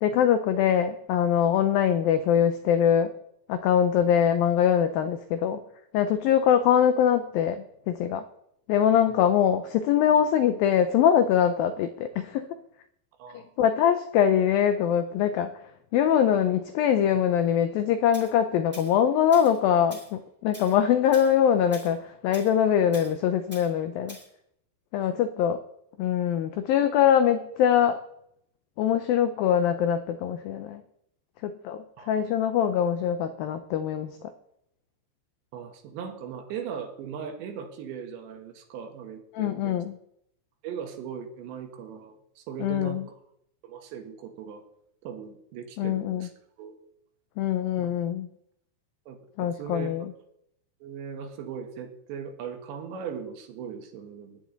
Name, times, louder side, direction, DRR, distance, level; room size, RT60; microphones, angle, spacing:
voice 1, 0.0-3.1 3.5-5.6 5.9-8.2 8.7-12.5 13.3-15.5 15.9-24.2 24.9-25.6 26.0-28.0 28.8-30.8 31.4-34.1 39.3-40.0 42.6-43.1 45.8-46.3 47.4-48.3 49.4-50.1, left 9 dB, 85° left, 10 dB, 2.0 m, -23 dB
voice 2, 13.2-13.5 25.0-25.3 32.0-32.3 35.5-39.8 40.6-43.2 43.6-44.6 45.0-46.3 46.6-46.8 47.8-47.9 49.1-50.1 50.8-54.4, right 7 dB, 85° right, 5 dB, 3.8 m, -39 dB
Tools, 18.1-18.3 18.7-18.9 19.3-19.6 19.9-20.1 20.5-20.8 21.1-21.3 21.7-21.9 22.3-22.5 22.9-23.1 23.5-23.7 24.1-24.3, right 1 dB, 5° right, 1.9 m, -45 dB
16.5 x 10.5 x 4.0 m, 0.74 s
omnidirectional pair, 5.0 m